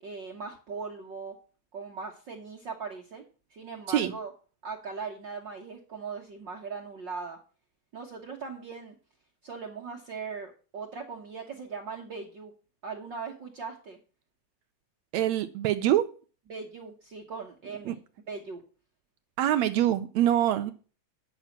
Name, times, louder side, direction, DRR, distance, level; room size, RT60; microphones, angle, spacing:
voice 1, 0.0-1.4 1.7-3.2 3.5-4.3 4.6-7.4 7.9-8.9 9.4-12.5 12.8-14.0 16.5-18.0 18.3-18.6 20.5-20.6, right 5 dB, 50° right, 0 dB, 1.5 m, -39 dB
voice 2, 15.1-16.0 17.9-18.0 19.4-20.7, right 12 dB, 75° right, 10 dB, 1.8 m, -24 dB
9.8 x 6.4 x 7.2 m, 0.37 s
omnidirectional pair, 3.5 m